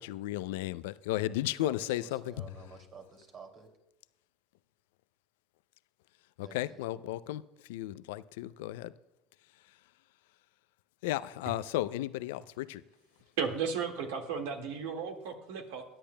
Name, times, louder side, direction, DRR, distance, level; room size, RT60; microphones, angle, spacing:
voice 1, 0.0-2.5 6.4-7.4 7.7-8.9 11.0-12.8, left 15 dB, 80° left, 16 dB, 0.4 m, -34 dB
voice 2, 1.6-3.7 6.4-6.8, right 5 dB, 50° right, 2 dB, 2.6 m, -51 dB
voice 3, 13.4-15.8, right 6 dB, 80° right, 4 dB, 1.8 m, -34 dB
22.0 x 10.0 x 2.2 m, 0.95 s
hypercardioid pair, 85°, 0 cm